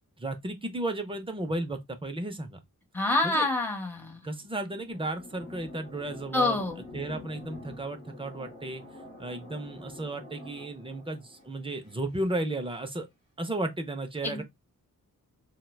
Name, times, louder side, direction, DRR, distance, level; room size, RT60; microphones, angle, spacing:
voice 1, 0.2-2.6 3.2-3.4 4.2-6.6 6.9-8.8 9.2-13.1 13.4-14.4, right 2 dB, 15° right, 0.4 m, -34 dB
voice 2, 2.9-4.3 6.3-6.8 14.2-14.4, left 2 dB, 5° left, 0.8 m, -27 dB
sound 1, 4.2-12.8, left 2 dB, 30° left, 2.4 m, -47 dB
4.4 x 2.1 x 2.2 m
wide cardioid pair, 135°, 35 cm